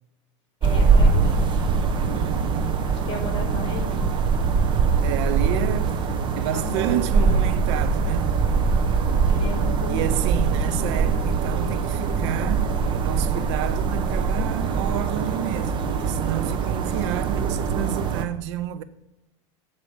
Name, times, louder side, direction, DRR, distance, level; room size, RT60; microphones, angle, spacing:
voice 1, 0.6-1.6 2.8-4.0 6.5-7.5 9.3-10.1 10.4-11.1, left 3 dB, 35° left, 3.4 m, -35 dB
sound 1, 0.6-18.3, right 5 dB, 30° right, 1.0 m, -22 dB
voice 2, 2.1-2.7 5.0-8.4 9.9-18.8, right 12 dB, 65° right, 0.6 m, -30 dB
8.5 x 4.8 x 7.0 m
supercardioid pair, 120°, 16 cm